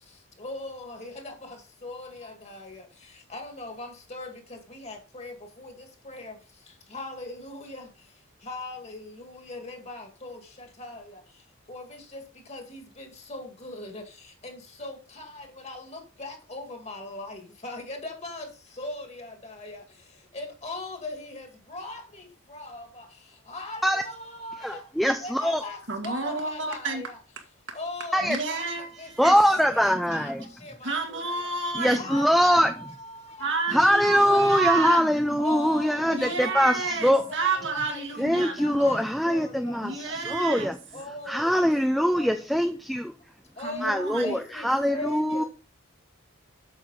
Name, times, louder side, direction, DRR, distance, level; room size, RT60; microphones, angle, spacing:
voice 1, 0.4-2.8 3.3-6.3 6.9-7.9 8.4-11.2 11.7-12.2 12.5-14.0 14.4-18.5 18.8-19.8 20.3-23.1 23.5-24.8 25.2-27.2 27.7-28.7 29.0-30.3 30.6-31.5 31.9-33.5 33.9-35.0 35.4-40.1 40.9-42.4 43.6-45.4, left 2 dB, 30° left, 2.0 m, -40 dB
voice 2, 24.6-25.6 28.1-28.4 29.2-30.4 31.8-32.7 33.7-37.2 38.2-40.8 41.3-43.1 43.8-45.4, equal, ahead, 0.5 m, -23 dB
voice 3, 25.9-27.0 27.7-27.8 28.2-29.3 30.8-32.0 33.4-35.1 36.1-38.6 39.8-40.7 43.6-44.4, right 4 dB, 60° right, 1.8 m, -30 dB
8.5 x 6.6 x 4.0 m
head